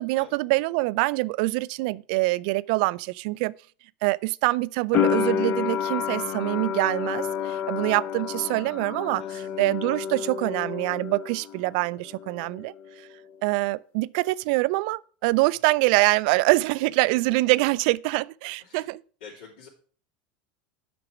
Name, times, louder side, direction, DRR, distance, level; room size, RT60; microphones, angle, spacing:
voice 1, 0.0-3.5 4.0-12.7 13.4-19.0, right 22 dB, 60° right, 0.3 m, -25 dB
sound 1, 4.9-11.7 12.0-12.9, left 8 dB, 40° left, 0.5 m, -29 dB
voice 2, 9.2-9.6 18.6-18.9 19.2-19.7, left 5 dB, 85° left, 3.0 m, -47 dB
7.7 x 6.0 x 6.0 m
supercardioid pair, 135°, 5 cm